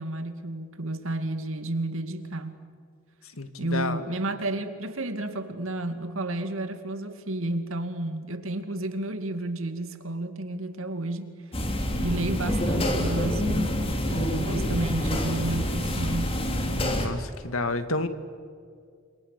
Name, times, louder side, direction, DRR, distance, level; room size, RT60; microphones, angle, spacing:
voice 1, 0.0-2.5 3.6-11.4 12.0-16.4, right 2 dB, 80° right, 8 dB, 2.4 m, -31 dB
voice 2, 3.4-4.0 17.0-18.1, left 2 dB, 90° left, 10 dB, 2.0 m, -30 dB
sound 1, 11.5-17.1, left 1 dB, 30° left, 3.1 m, -27 dB
29.5 x 27.0 x 6.8 m, 2.2 s
head